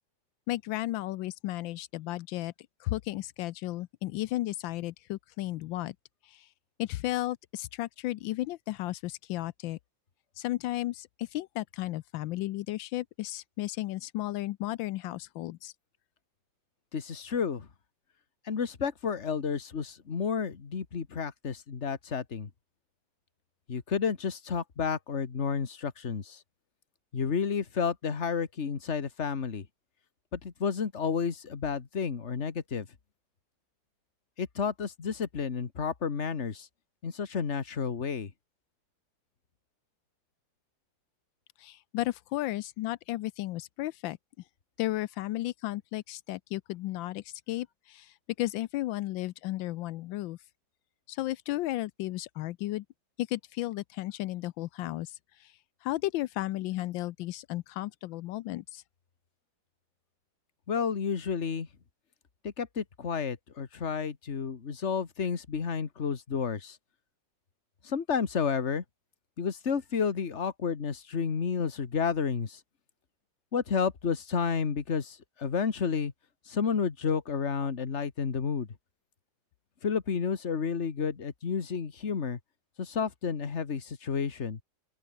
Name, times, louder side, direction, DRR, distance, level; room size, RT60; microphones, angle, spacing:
voice 1, 0.5-2.5 2.8-5.9 6.2-6.5 6.8-9.8 10.4-15.7 41.6-44.2 44.8-50.4 51.1-52.8 53.2-55.5 55.8-58.8, left 16 dB, 85° left, 1.3 m, -34 dB
voice 2, 16.9-17.7 18.5-22.5 23.7-26.4 27.1-29.7 30.3-32.9 34.4-36.7 37.0-38.3 60.7-61.7 62.4-66.8 67.8-68.8 69.4-72.6 73.5-76.1 76.5-78.7 79.8-82.4 82.8-84.6, left 6 dB, 40° left, 1.8 m, -31 dB
open air
omnidirectional pair, 2.1 m